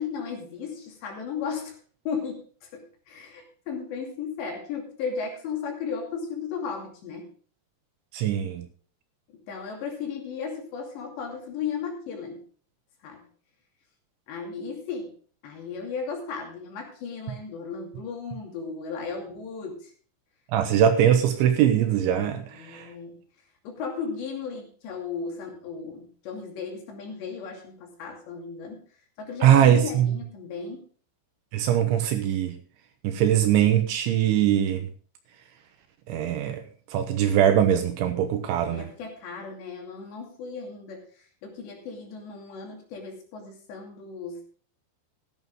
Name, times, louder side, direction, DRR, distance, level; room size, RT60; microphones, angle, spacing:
voice 1, 0.0-1.7 2.1-7.3 9.5-12.4 13.0-13.2 14.3-15.1 15.4-19.9 22.5-23.2 23.6-28.8 29.2-30.8 38.7-41.0 41.4-44.5, left 5 dB, 65° left, 4.6 m, -35 dB
voice 2, 8.1-8.7 20.5-22.9 29.4-30.2 31.5-32.6 33.0-34.8 36.1-36.6 36.9-38.9, right 10 dB, 75° right, 3.3 m, -21 dB
14.0 x 11.0 x 3.7 m
omnidirectional pair, 5.6 m